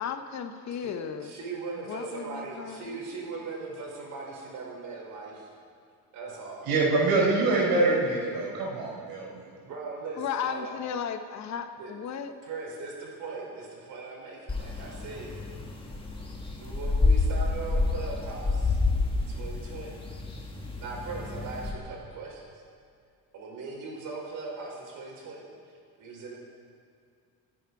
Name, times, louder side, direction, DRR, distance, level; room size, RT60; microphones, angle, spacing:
voice 1, 0.0-1.3 1.8-3.0 10.2-12.3, left 8 dB, 50° left, 8 dB, 1.0 m, -35 dB
voice 2, 1.2-5.5 6.1-6.7 9.6-10.7 11.8-11.9 12.5-15.4 16.5-18.8 19.2-20.0 20.8-22.4 23.3-25.5 26.0-26.4, right 4 dB, 60° right, -2 dB, 5.0 m, -39 dB
voice 3, 6.7-9.4, right 3 dB, 80° right, -2 dB, 4.7 m, -25 dB
sound 1, 14.5-21.7, left 3 dB, 15° left, 1.8 m, -29 dB
26.5 x 10.0 x 4.8 m, 2.2 s
cardioid pair, 140°, 35 cm